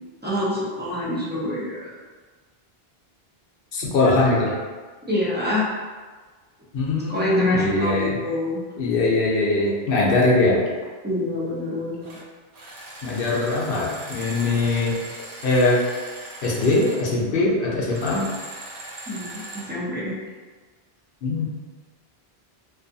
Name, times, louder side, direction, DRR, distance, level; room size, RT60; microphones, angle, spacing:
voice 1, 0.2-1.9 5.1-5.7 7.1-8.6 11.0-12.2 19.1-20.2, left 1 dB, 15° right, -8 dB, 0.4 m, -26 dB
voice 2, 3.7-4.6 6.7-8.2 8.8-10.6 13.0-15.0 15.4-15.8 16.4-18.3 21.2-21.4, left 2 dB, 65° left, -4 dB, 0.7 m, -21 dB
sound 1, 12.0-12.2 12.5-17.1 17.9-19.7, right 2 dB, 75° right, 0.8 m, -39 dB
2.5 x 2.3 x 2.6 m, 1.4 s
omnidirectional pair, 1.1 m